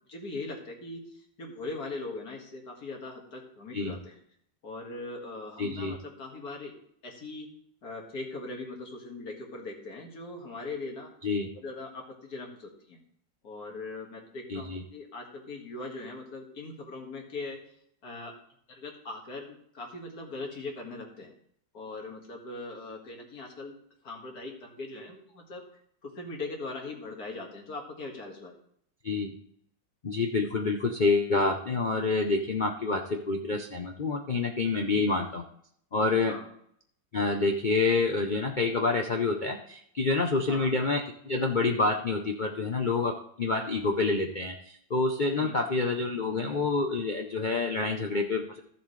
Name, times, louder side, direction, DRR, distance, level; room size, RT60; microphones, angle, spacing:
voice 1, 0.1-4.2 4.6-6.7 7.0-7.5 7.8-11.1 11.5-13.0 13.4-17.6 18.0-18.3 18.7-21.3 21.7-23.7 24.0-25.6 26.0-28.6 34.9-35.1 36.3-36.5 40.5-40.7 45.3-45.6, left 3 dB, 55° left, 1 dB, 2.3 m, -40 dB
voice 2, 5.6-5.9 11.2-11.5 14.5-14.8 29.0-29.3 30.0-35.4 35.9-36.4 37.1-48.6, left 3 dB, 75° left, 3 dB, 0.4 m, -27 dB
15.0 x 7.1 x 3.2 m, 0.67 s
omnidirectional pair, 2.0 m